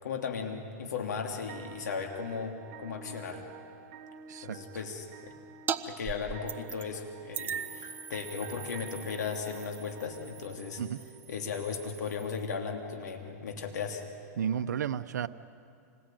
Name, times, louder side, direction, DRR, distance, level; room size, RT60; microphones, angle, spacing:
voice 1, 0.0-3.4 4.4-5.3 5.8-10.8 11.3-14.0, left 5 dB, 85° left, 3 dB, 2.9 m, -36 dB
sound 1, 1.5-11.5, right 5 dB, 45° right, 1.6 m, -50 dB
sound 2, 5.7-5.8 6.0-7.0 7.3-12.4, right 7 dB, 20° right, 1.1 m, -40 dB
voice 2, 14.4-15.3, right 8 dB, 85° right, 10 dB, 0.9 m, -32 dB
27.0 x 20.0 x 9.2 m, 2.3 s
hypercardioid pair, 130°, 9 cm